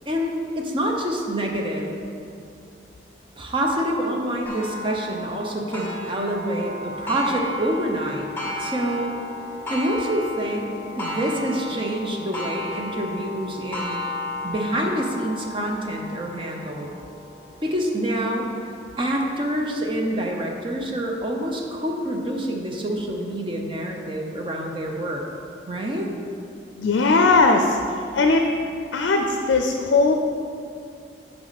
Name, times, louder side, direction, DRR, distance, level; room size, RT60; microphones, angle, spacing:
voice 1, 0.1-1.9 3.4-8.3 8.6-9.1 9.7-10.7 11.0-14.1 14.4-16.9 17.6-18.5 19.0-25.2 25.7-26.1, right 1 dB, 25° right, 0 dB, 0.7 m, -26 dB
Clock, 4.5-19.8 20.4-20.5 21.0-21.1 22.1-22.2, left 1 dB, 10° left, 1.0 m, -34 dB
voice 2, 26.8-27.8 28.1-28.5 28.9-30.1, left 3 dB, 75° left, 4 dB, 0.4 m, -18 dB
9.2 x 5.0 x 4.1 m, 2.5 s
head